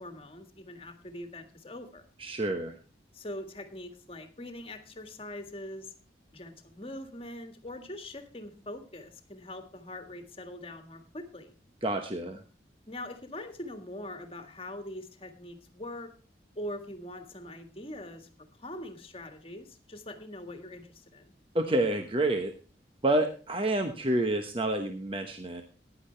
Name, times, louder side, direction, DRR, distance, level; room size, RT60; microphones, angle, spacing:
voice 1, 0.0-2.1 3.1-5.9 6.3-11.5 12.9-16.1 16.6-18.3 18.6-21.3, left 1 dB, 30° left, 7 dB, 1.8 m, -42 dB
voice 2, 2.2-2.7 11.8-12.4 21.5-22.5 23.0-25.6, right 1 dB, 30° right, 6 dB, 1.0 m, -28 dB
15.5 x 10.5 x 3.3 m, 0.36 s
head